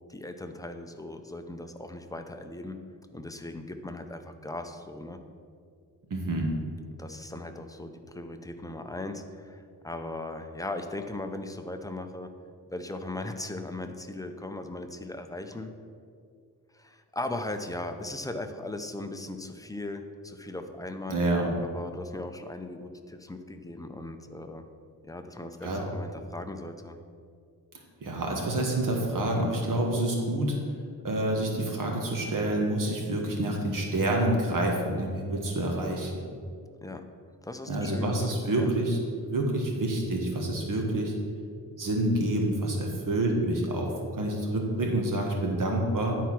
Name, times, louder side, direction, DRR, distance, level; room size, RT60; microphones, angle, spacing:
voice 1, 0.1-2.8 3.1-5.2 7.0-12.3 12.7-15.7 16.7-21.2 21.6-24.6 25.0-27.0 36.8-37.0 37.4-38.7, left 2 dB, 10° left, 6 dB, 0.5 m, -38 dB
voice 2, 6.1-6.5 21.1-21.5 25.6-25.8 28.0-30.6 31.0-36.1 37.7-39.0 39.2-41.1 41.8-46.1, right 1 dB, 55° right, 1 dB, 1.4 m, -27 dB
10.5 x 4.6 x 6.0 m, 2.2 s
cardioid pair, 120°, 38 cm